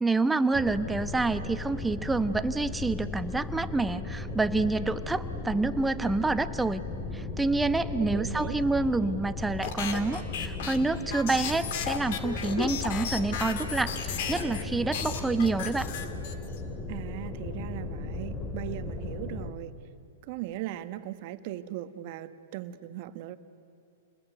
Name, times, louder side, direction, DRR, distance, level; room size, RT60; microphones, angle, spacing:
voice 1, 0.0-6.8 7.1-15.9, right 3 dB, 10° right, 12 dB, 1.0 m, -28 dB
sound 1, 0.5-19.5, left 3 dB, 20° left, 2.9 m, -36 dB
voice 2, 8.0-8.6 16.9-19.7 20.2-23.4, right 13 dB, 50° right, 11 dB, 1.4 m, -38 dB
sound 2, 9.6-14.6 14.9-16.6, left 8 dB, 60° left, 2.7 m, -34 dB
29.0 x 20.5 x 9.5 m, 2.6 s
hypercardioid pair, 120°, 0 cm